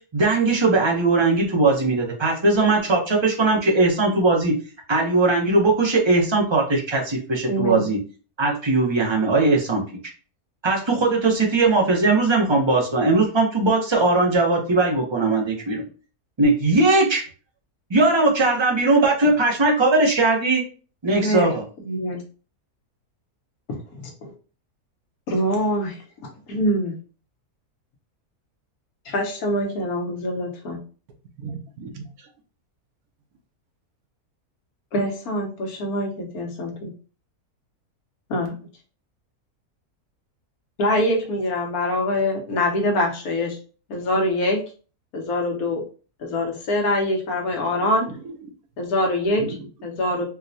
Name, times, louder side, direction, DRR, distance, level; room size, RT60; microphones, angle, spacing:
voice 1, 0.1-4.6 4.9-8.0 8.4-9.8 10.6-15.8 16.4-17.2 17.9-20.6 21.0-21.6, right 3 dB, 45° right, 0.3 m, -19 dB
voice 2, 7.5-7.8 21.2-21.5 21.8-22.2 23.7-24.3 25.3-26.0 26.5-27.0 29.0-30.8 34.9-36.9 38.3-38.5 40.8-43.6 43.9-44.6 45.1-45.8 46.2-48.1 48.8-49.4 49.8-50.2, left 1 dB, 70° left, 1.3 m, -24 dB
voice 3, 31.4-32.3 47.7-48.5 49.3-49.7, right 4 dB, 75° right, 1.1 m, -37 dB
4.5 x 2.1 x 2.6 m
omnidirectional pair, 1.6 m